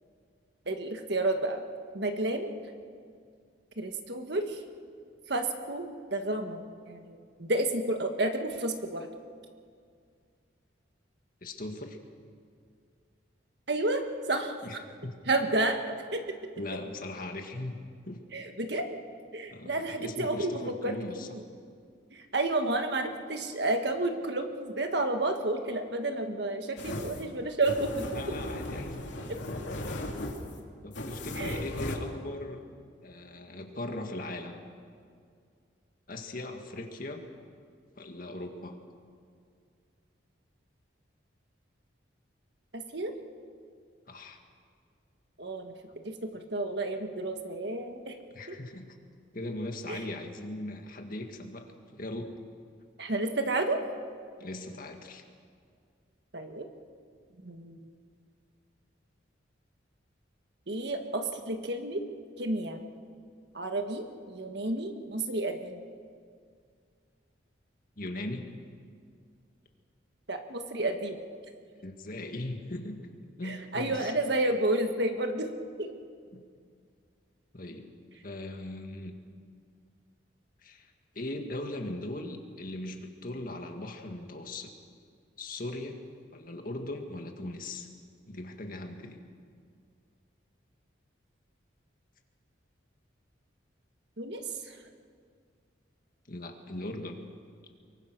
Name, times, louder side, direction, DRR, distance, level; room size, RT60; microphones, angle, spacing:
voice 1, 0.7-1.6 1.9-2.5 3.8-4.6 5.3-9.1 13.7-14.0 14.3-14.6 15.3-15.8 16.1-16.2 18.3-19.0 19.3-20.9 21.3-21.4 22.1-28.0 31.4-31.6 42.7-43.1 45.4-45.7 46.0-48.1 48.5-48.6 49.9-50.1 53.0-53.8 56.3-56.7 57.4-57.8 60.7-62.0 62.4-62.8 63.5-65.8 70.3-71.2 73.4-75.5 75.8-75.9 94.2-94.4, right 2 dB, 60° right, 5 dB, 1.7 m, -31 dB
voice 2, 11.4-12.0 14.6-15.2 16.6-17.8 18.1-18.2 19.5-21.4 28.1-29.4 30.8-32.6 33.0-34.6 36.1-37.2 38.0-38.7 44.1-44.4 48.3-48.9 49.3-52.4 54.4-55.2 68.0-68.5 71.8-73.0 73.4-74.1 76.3-76.4 77.5-77.9 78.2-79.2 80.6-84.7 85.4-86.0 86.3-87.9 88.3-89.2 96.3-97.1, left 1 dB, 45° left, 4 dB, 2.0 m, -39 dB
sound 1, 26.8-32.0, left 1 dB, 70° left, 2.7 m, -36 dB
24.5 x 23.0 x 6.2 m, 2.2 s
head